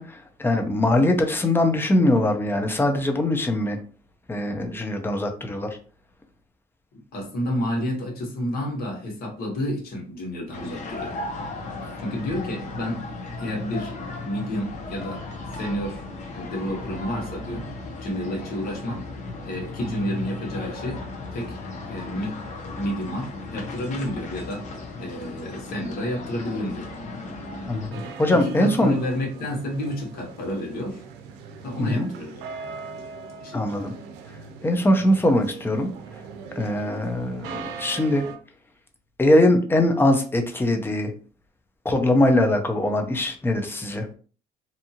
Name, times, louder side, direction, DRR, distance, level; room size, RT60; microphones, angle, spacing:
voice 1, 0.0-3.8 4.3-5.7 27.7-27.9 28.2-29.0 31.8-32.1 33.5-33.9 34.6-35.9 36.5-38.2 39.2-41.1 41.8-44.1, left 1 dB, 15° left, 5 dB, 0.5 m, -21 dB
voice 2, 7.1-11.2 12.0-13.0 13.4-15.2 15.6-16.1 16.3-17.7 18.0-19.0 19.4-21.0 21.3-21.6 21.9-24.7 25.0-26.9 27.9-31.0 31.6-32.4 33.4-33.6, left 1 dB, 65° left, -1 dB, 1.2 m, -30 dB
sound 1, 10.5-27.9, left 2 dB, 45° left, 0.8 m, -36 dB
sound 2, 27.9-38.4, right 5 dB, 85° right, 0.5 m, -40 dB
2.7 x 2.4 x 2.7 m, 0.40 s
cardioid pair, 110°, 17 cm